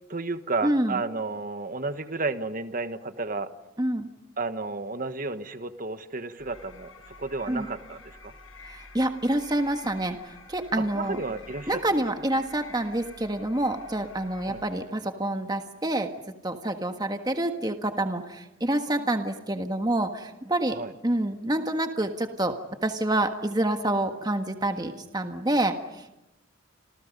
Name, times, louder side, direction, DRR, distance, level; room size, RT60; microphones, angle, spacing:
voice 1, 0.1-3.5 4.4-8.3 10.8-11.8 14.4-14.6 20.7-20.9, right 3 dB, 45° right, 10 dB, 1.4 m, -32 dB
voice 2, 0.6-1.0 3.8-4.1 7.5-7.7 8.6-11.2 11.7-16.1 16.4-20.8 21.0-26.1, right 1 dB, 20° right, 6 dB, 1.5 m, -27 dB
sound 1, 6.4-15.0, left 3 dB, 85° left, 7.5 m, -49 dB
29.5 x 27.5 x 5.4 m, 0.92 s
head